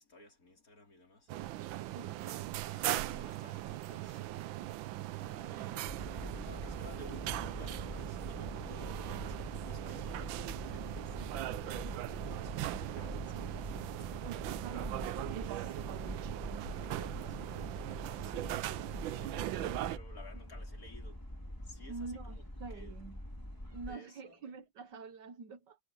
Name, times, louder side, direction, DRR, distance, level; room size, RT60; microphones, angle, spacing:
voice 1, 0.0-1.4 2.0-2.4 2.7-4.3 4.8-5.9 6.2-18.4 19.1-19.4 19.9-21.3 21.6-22.4 22.7-23.0 23.8-24.6, left 1 dB, 45° left, 4.4 m, -56 dB
sound 1, 1.3-20.0, right 14 dB, 80° right, 1.4 m, -39 dB
sound 2, 5.8-24.0, equal, 10° left, 3.6 m, -45 dB
voice 2, 21.9-23.2 23.7-25.8, right 4 dB, 65° right, 1.8 m, -46 dB
omnidirectional pair, 2.1 m